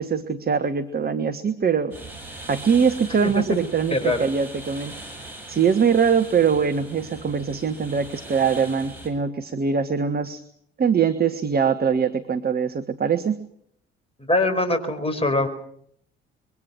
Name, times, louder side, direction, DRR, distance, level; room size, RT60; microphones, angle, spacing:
voice 1, 0.0-1.9 2.5-5.0 5.5-10.4 10.8-13.4, right 6 dB, 30° right, 8 dB, 1.5 m, -22 dB
sound 1, 1.9-9.1, right 2 dB, 80° right, 6.0 m, -40 dB
voice 2, 3.2-3.6 3.9-4.2 14.2-15.5, left 2 dB, 20° left, 9 dB, 5.3 m, -23 dB
25.5 x 23.0 x 6.3 m, 0.67 s
figure-of-eight pair, 50°, 31 cm